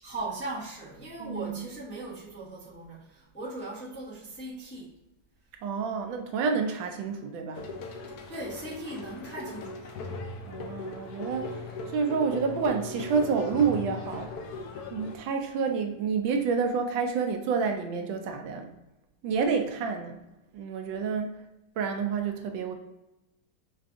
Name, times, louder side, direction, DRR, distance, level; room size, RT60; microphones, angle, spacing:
voice 1, 0.0-4.9 8.3-9.9, right 2 dB, 10° left, -7 dB, 0.8 m, -39 dB
voice 2, 1.2-1.7 5.6-7.7 10.5-11.6 11.9-14.3 14.9-18.7 19.2-20.2 20.5-21.4 21.8-22.7, right 5 dB, 80° right, 5 dB, 1.3 m, -29 dB
sound 1, 7.5-15.2, left 3 dB, 70° left, 0.9 m, -39 dB
5.6 x 2.5 x 3.4 m, 0.94 s
omnidirectional pair, 2.1 m